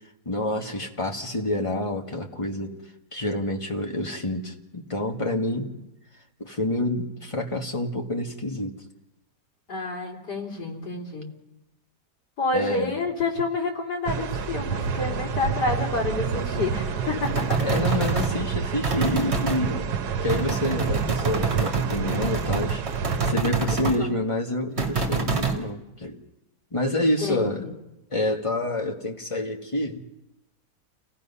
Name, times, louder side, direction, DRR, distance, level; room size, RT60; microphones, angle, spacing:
voice 1, 0.2-2.8 3.1-5.7 6.4-8.8 12.5-13.0 17.6-19.9 20.2-22.8 23.2-26.2 26.7-27.7 28.1-30.1, left 1 dB, 20° left, 2 dB, 1.6 m, -28 dB
voice 2, 9.7-11.3 12.4-17.6 24.0-24.2 27.0-27.7, left 3 dB, 80° left, -1 dB, 4.2 m, -29 dB
sound 1, 14.0-23.3, right 6 dB, 70° right, 1.5 m, -28 dB
sound 2, 17.2-18.4 18.8-19.6 20.3-24.0 24.8-25.6, right 4 dB, 40° right, 2.2 m, -27 dB
29.0 x 17.5 x 5.6 m, 0.96 s
omnidirectional pair, 1.8 m